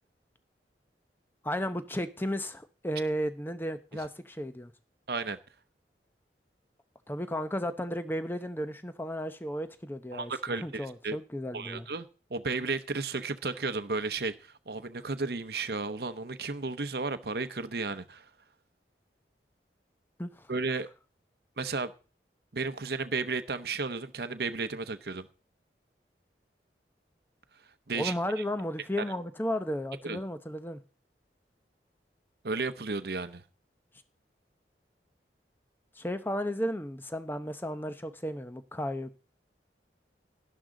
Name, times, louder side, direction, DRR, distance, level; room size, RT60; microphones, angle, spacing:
voice 1, 1.4-4.7 7.1-11.9 20.2-20.5 27.9-30.8 36.0-39.2, equal, 10° left, 0.7 m, -34 dB
voice 2, 5.1-5.4 10.1-11.2 11.5-18.3 20.5-20.9 21.6-21.9 22.5-25.3 27.9-28.4 29.0-29.1 30.0-30.2 32.4-33.4, right 4 dB, 60° right, 0.8 m, -33 dB
11.5 x 11.5 x 3.8 m
head